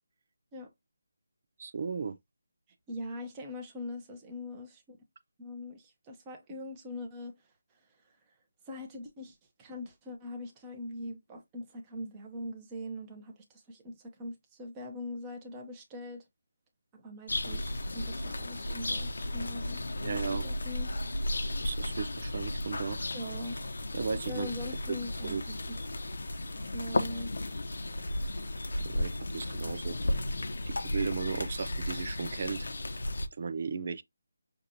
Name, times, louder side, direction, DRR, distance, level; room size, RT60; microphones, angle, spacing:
voice 1, 1.6-2.2 20.0-20.4 21.5-23.0 23.9-24.5 24.9-25.0 25.2-25.4 28.8-30.0 30.7-32.7 33.4-34.0, right 5 dB, 40° right, 0.5 m, -35 dB
voice 2, 2.9-5.0 5.4-7.3 8.7-16.2 16.9-20.9 23.1-23.5 24.3-25.8 26.5-27.4, left 1 dB, 15° right, 0.9 m, -42 dB
sound 1, 17.3-33.3, left 1 dB, 70° left, 0.9 m, -34 dB
6.5 x 2.6 x 2.8 m
figure-of-eight pair, 170°, 0 cm